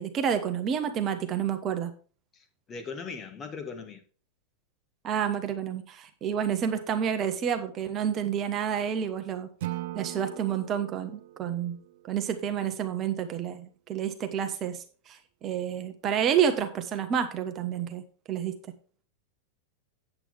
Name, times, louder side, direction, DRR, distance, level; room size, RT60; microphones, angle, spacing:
voice 1, 0.0-1.9 5.0-9.5 9.9-11.8 12.1-18.5, right 8 dB, 30° right, 1.2 m, -29 dB
voice 2, 2.3-4.0, left 5 dB, 25° left, 1.6 m, -39 dB
Acoustic guitar / Strum, 9.6-12.8, right 15 dB, 55° right, 0.7 m, -40 dB
9.0 x 8.2 x 3.5 m
figure-of-eight pair, 90°, 0 cm